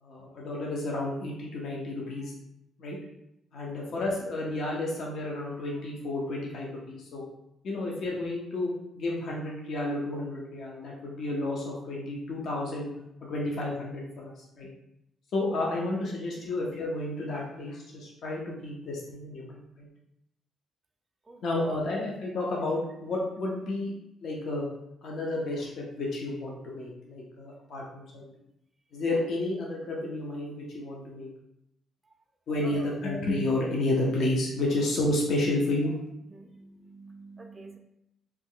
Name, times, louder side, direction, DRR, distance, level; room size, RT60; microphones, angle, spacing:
voice 1, 0.0-2.3 2.8-3.0 3.5-7.2 7.6-8.7 9.0-12.9 13.2-14.7 15.3-19.9 21.4-23.9 24.2-24.7 25.0-28.3 28.9-31.3 32.5-36.0, left 2 dB, 65° left, -3 dB, 0.7 m, -31 dB
voice 2, 21.3-21.8 32.6-33.0 36.3-37.8, right 3 dB, 20° right, 2 dB, 0.4 m, -46 dB
2.9 x 2.2 x 3.6 m, 0.83 s
cardioid pair, 90°, 0 cm